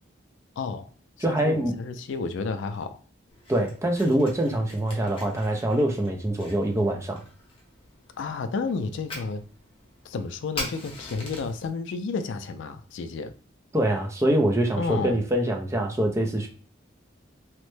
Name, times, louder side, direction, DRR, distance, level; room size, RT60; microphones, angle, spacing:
voice 1, 0.6-0.9 1.3-3.0 8.2-9.4 10.0-13.3 14.8-15.2, left 4 dB, 70° left, 0.3 m, -31 dB
voice 2, 1.2-1.7 3.5-7.2 13.7-16.5, right 1 dB, 15° right, 0.4 m, -24 dB
Fire, 3.3-11.7, left 2 dB, 25° left, 0.8 m, -43 dB
3.1 x 2.0 x 3.1 m
head